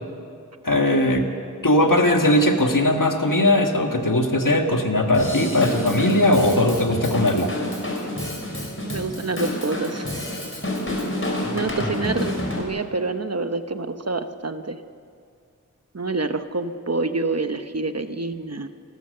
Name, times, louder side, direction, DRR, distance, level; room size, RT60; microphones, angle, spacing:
voice 1, 0.6-1.3 1.6-7.5, left 1 dB, 75° left, 3 dB, 1.9 m, -19 dB
Drum kit / Drum, 5.1-12.6, left 1 dB, 40° left, 4.3 m, -29 dB
voice 2, 8.8-10.1 11.5-14.8 15.9-18.7, right 3 dB, 50° right, 9 dB, 1.0 m, -27 dB
29.0 x 13.5 x 6.8 m, 2.2 s
wide cardioid pair, 45°, 32 cm